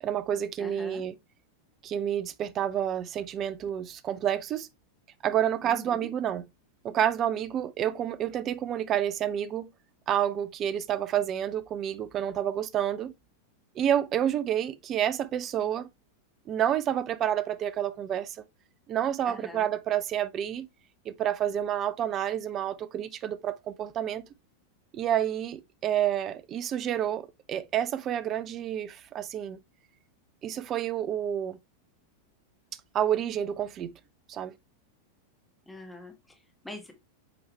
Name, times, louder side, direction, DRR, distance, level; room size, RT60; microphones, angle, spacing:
voice 1, 0.0-1.1 1.8-4.7 5.2-6.4 6.8-9.7 10.1-13.1 13.8-15.9 16.5-18.4 18.9-20.7 21.1-24.2 24.9-29.6 30.4-31.6 32.9-33.9 34.3-34.5, right 10 dB, 30° right, 0.6 m, -29 dB
voice 2, 0.6-1.0 5.6-6.1 19.3-19.7 35.7-36.9, left 2 dB, 5° left, 1.7 m, -44 dB
7.8 x 4.8 x 3.1 m
figure-of-eight pair, 90°, 0 cm